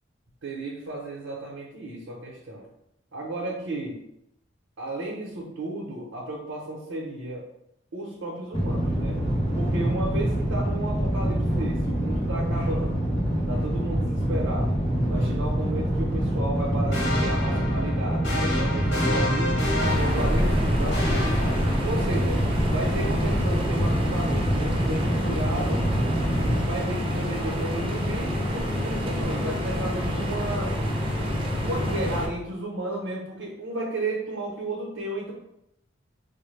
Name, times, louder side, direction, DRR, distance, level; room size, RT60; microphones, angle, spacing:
voice 1, 0.4-2.7 3.1-4.0 4.8-7.5 7.9-9.2 9.5-13.1 13.5-14.8 15.1-19.6 19.9-22.4 22.7-25.9 26.6-30.8 31.6-35.3, right 2 dB, 90° right, -3 dB, 0.8 m, -33 dB
sound 1, 8.5-26.6, equal, 30° left, 0.9 m, -26 dB
sound 2, 16.9-22.2, left 1 dB, 70° left, 1.2 m, -30 dB
sound 3, 19.8-32.3, equal, 30° right, 0.6 m, -27 dB
4.4 x 2.2 x 3.2 m, 0.80 s
head